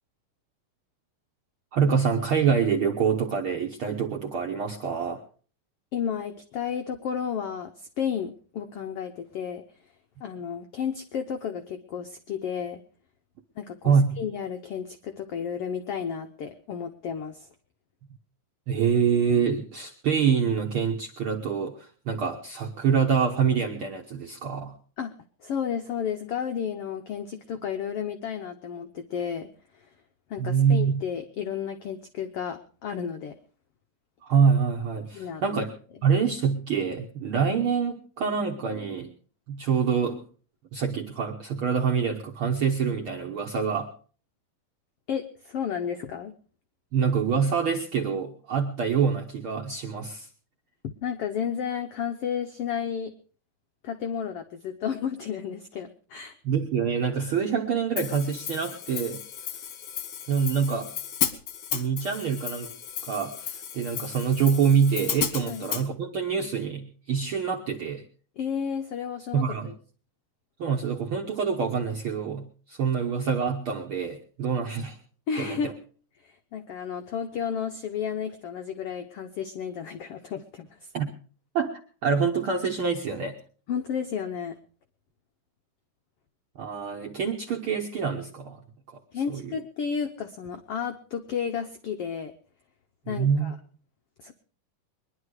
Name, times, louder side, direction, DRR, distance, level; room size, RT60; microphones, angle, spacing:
voice 1, 1.7-5.2 13.8-14.2 18.7-24.7 30.4-31.0 34.2-35.7 36.0-39.1 39.5-40.2 40.7-43.9 46.9-50.3 56.4-59.2 60.3-60.9 61.7-62.7 63.0-68.0 69.3-69.7 70.6-75.0 75.4-75.7 80.9-81.1 81.5-81.7 82.0-83.3 86.6-88.6 89.3-89.5 93.1-93.5, right 6 dB, 70° right, 2 dB, 1.2 m, -26 dB
voice 2, 5.9-9.6 10.2-12.8 13.6-17.5 25.0-25.1 25.4-29.5 30.3-33.3 35.1-35.6 45.1-46.3 50.8-53.1 53.8-56.3 65.5-65.6 68.4-69.7 75.3-75.7 76.2-80.7 83.7-84.5 89.1-92.3 93.1-93.5 94.2-94.3, left 7 dB, 85° left, 6 dB, 1.3 m, -32 dB
Hi-hat, 58.0-65.9, left 9 dB, 60° left, 1.5 m, -34 dB
22.5 x 10.5 x 4.8 m, 0.42 s
omnidirectional pair, 3.9 m